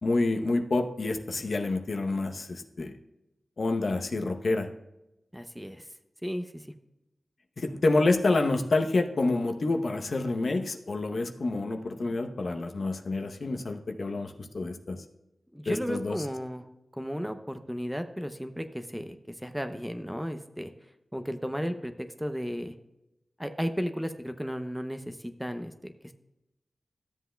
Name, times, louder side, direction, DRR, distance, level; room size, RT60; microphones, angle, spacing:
voice 1, 0.0-2.9 3.6-4.7 7.6-15.0 15.7-16.2, left 2 dB, 60° left, 5 dB, 0.8 m, -28 dB
voice 2, 5.3-5.8 6.2-6.7 15.5-16.6 16.9-20.7 21.1-22.7 23.4-26.1, equal, ahead, 8 dB, 0.6 m, -34 dB
13.5 x 7.7 x 2.2 m, 0.91 s
wide cardioid pair, 90°, 0 cm